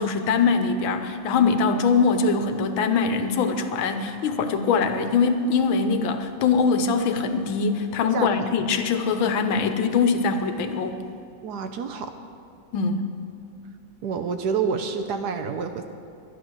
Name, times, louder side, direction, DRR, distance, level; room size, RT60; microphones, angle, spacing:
voice 1, 0.0-11.0 12.7-13.1, left 5 dB, 90° left, 7 dB, 1.7 m, -22 dB
voice 2, 11.4-12.1 14.0-15.8, right 6 dB, 65° right, 7 dB, 1.1 m, -28 dB
12.0 x 11.0 x 6.2 m, 2.5 s
omnidirectional pair, 2.1 m